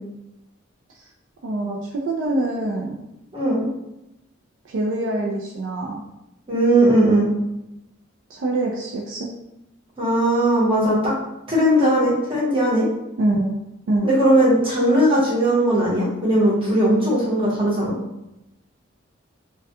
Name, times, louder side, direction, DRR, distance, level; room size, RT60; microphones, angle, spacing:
voice 1, 1.4-3.1 4.6-6.0 8.3-9.3 13.2-13.6 13.9-14.2, right 2 dB, 65° right, -2 dB, 0.3 m, -24 dB
voice 2, 3.3-3.7 6.5-7.3 10.0-11.1 11.5-12.9 14.0-17.9, right 1 dB, 25° right, -6 dB, 0.9 m, -18 dB
2.2 x 2.2 x 2.7 m, 0.89 s
head